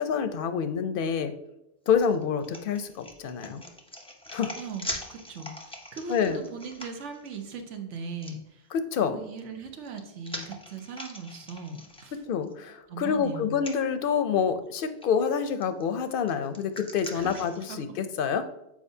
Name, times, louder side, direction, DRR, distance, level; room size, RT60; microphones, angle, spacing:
voice 1, 0.0-1.3 1.9-3.6 4.3-4.5 6.1-6.4 8.7-9.2 12.3-18.5, left 7 dB, 60° left, 10 dB, 0.6 m, -27 dB
sound 1, 1.9-7.4 8.2-8.3 9.5-12.5 12.9-13.0 13.5-13.8 14.7-15.1 15.5-17.7, left 1 dB, 5° left, 0.5 m, -42 dB
voice 2, 4.6-8.4 9.0-12.2 12.9-13.5 17.1-17.4 17.7-17.8, right 4 dB, 90° right, 5 dB, 1.1 m, -39 dB
7.3 x 4.8 x 2.7 m, 0.84 s
omnidirectional pair, 1.2 m